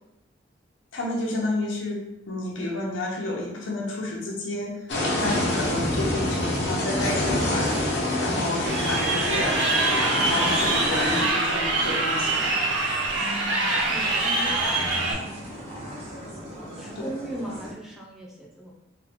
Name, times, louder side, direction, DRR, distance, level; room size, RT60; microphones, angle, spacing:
voice 1, 0.9-4.7 5.2-7.8 8.2-9.6 10.3-12.6 16.9-17.1, left 1 dB, 90° left, -2 dB, 0.9 m, -30 dB
sound 1, 4.9-11.2, left 1 dB, 65° left, 0.9 m, -26 dB
sound 2, 6.8-17.7, equal, 35° right, 0.9 m, -42 dB
Crowd, 8.7-15.1, right 2 dB, 75° right, 0.7 m, -24 dB
voice 2, 13.2-15.4 16.8-18.7, right 1 dB, ahead, -4 dB, 0.6 m, -39 dB
3.6 x 2.5 x 3.5 m, 0.86 s
head